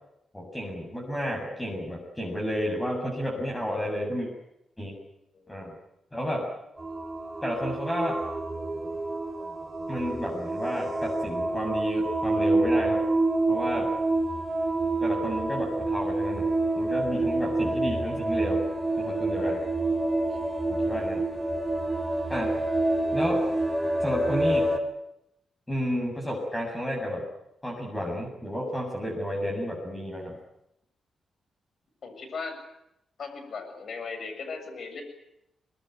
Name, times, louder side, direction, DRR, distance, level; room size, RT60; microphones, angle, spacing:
voice 1, 0.3-4.3 4.8-4.9 5.5-5.7 6.1-6.5 7.4-8.2 9.9-13.0 13.5-13.9 15.0-18.6 19.0-19.6 20.7-21.2 22.3-22.6 23.1-23.4 24.0-24.7 25.7-27.2 27.6-30.3, equal, 15° left, -1 dB, 7.8 m, -31 dB
voice 2, 5.3-5.7 19.4-19.7 20.3-20.5 32.0-32.6 33.2-35.0, left 4 dB, 60° left, 7 dB, 7.3 m, -38 dB
sound 1, 6.8-24.8, right 2 dB, 15° right, 3.8 m, -27 dB
24.0 x 21.5 x 9.6 m, 0.84 s
cardioid pair, 85°, 0 cm